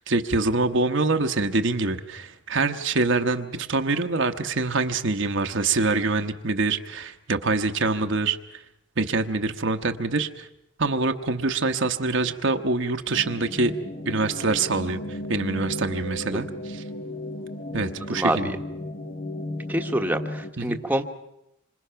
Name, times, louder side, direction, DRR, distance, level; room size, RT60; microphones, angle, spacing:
voice 1, 0.1-8.4 9.0-10.5 10.8-13.7 14.1-16.8 17.7-18.5 20.6-20.8, right 3 dB, 60° right, 6 dB, 1.1 m, -25 dB
sound 1, 13.1-20.5, left 1 dB, 45° left, 1.3 m, -35 dB
voice 2, 18.1-18.6 19.7-21.0, right 1 dB, 10° right, 4 dB, 1.1 m, -26 dB
27.0 x 26.0 x 5.8 m, 0.84 s
head